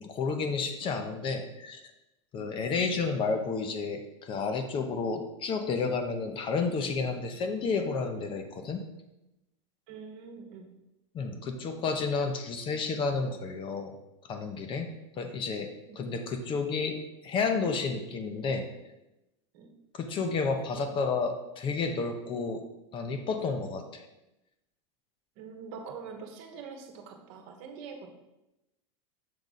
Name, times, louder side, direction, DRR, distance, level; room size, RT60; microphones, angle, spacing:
voice 1, 0.0-1.8 2.3-8.8 11.1-13.9 14.3-14.9 15.2-17.0 17.2-18.7 19.9-22.6 22.9-24.0, left 4 dB, 35° left, 6 dB, 0.8 m, -31 dB
voice 2, 9.9-10.7 15.9-16.0 19.5-19.7 25.4-28.1, right 5 dB, 60° right, 4 dB, 1.1 m, -44 dB
6.7 x 3.5 x 4.0 m, 0.93 s
hypercardioid pair, 110°, 15 cm